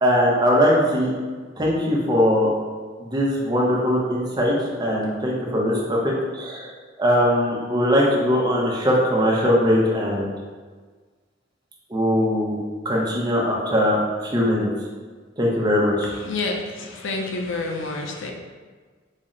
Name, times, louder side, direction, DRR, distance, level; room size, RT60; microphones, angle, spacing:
voice 1, 0.0-1.1 1.6-2.5 3.0-6.7 7.0-10.3 11.9-12.6 12.8-14.7 15.4-16.1, equal, 20° right, -4 dB, 0.6 m, -20 dB
voice 2, 16.0-18.3, left 3 dB, 65° left, 2 dB, 0.4 m, -29 dB
4.1 x 2.0 x 3.7 m, 1.5 s
head